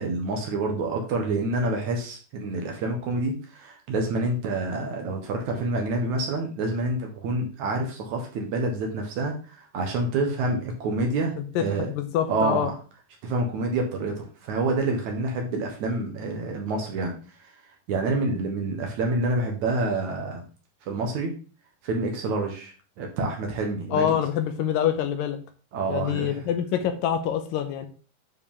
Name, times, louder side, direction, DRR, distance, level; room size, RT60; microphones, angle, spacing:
voice 1, 0.0-11.9 12.3-12.7 13.2-17.1 17.9-20.5 20.9-21.3 21.8-24.2 25.7-26.4, right 2 dB, 65° right, 2 dB, 2.3 m, -27 dB
voice 2, 11.4-12.7 23.9-25.4 25.9-27.9, left 9 dB, 80° left, 7 dB, 2.3 m, -26 dB
9.6 x 4.9 x 3.6 m, 0.37 s
omnidirectional pair, 4.3 m